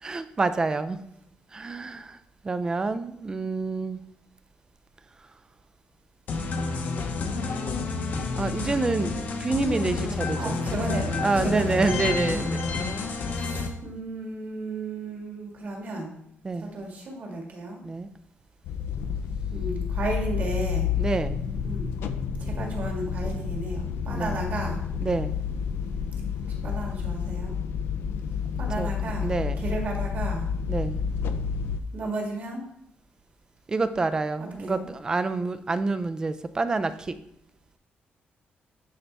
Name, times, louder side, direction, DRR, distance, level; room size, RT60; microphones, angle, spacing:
voice 1, 0.0-1.0 1.5-2.2 2.4-4.0 8.4-10.6 11.2-12.6 16.4-16.7 17.8-18.1 21.0-21.5 24.1-24.4 25.0-25.3 28.8-29.6 30.7-31.0 33.7-37.2, right 3 dB, 20° right, 13 dB, 0.3 m, -28 dB
sound 1, 6.3-13.7, left 4 dB, 50° left, 0.8 m, -29 dB
voice 2, 10.3-12.5 13.4-16.2 16.6-17.8 19.5-20.9 21.6-21.9 22.4-24.8 26.6-27.6 28.6-29.3 29.6-30.5 31.9-32.6 34.6-34.8, right 2 dB, 45° right, 0 dB, 1.6 m, -34 dB
sound 2, 18.6-31.8, left 7 dB, 75° left, 0.5 m, -30 dB
9.9 x 4.1 x 3.4 m, 0.75 s
cardioid pair, 175°, 4 cm